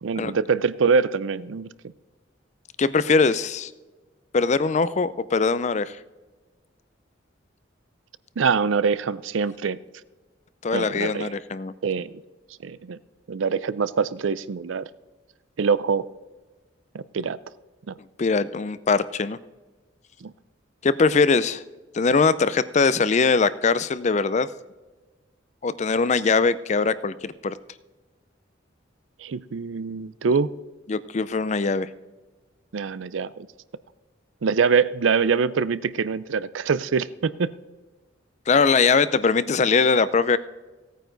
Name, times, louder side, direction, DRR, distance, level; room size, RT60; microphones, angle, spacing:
voice 1, 0.0-1.7 8.4-9.8 10.7-11.3 11.8-12.2 12.6-13.0 13.3-14.8 15.6-16.1 16.9-17.4 17.9-18.0 20.2-20.3 29.2-30.5 32.7-33.5 34.4-37.5, right 5 dB, 85° right, 17 dB, 0.5 m, -24 dB
voice 2, 2.8-3.7 4.3-6.0 10.6-11.7 18.2-19.4 20.8-21.6 21.9-24.5 25.6-27.6 30.9-31.9 38.5-40.4, left 4 dB, 35° left, 16 dB, 0.4 m, -21 dB
16.5 x 9.2 x 3.9 m, 1.2 s
head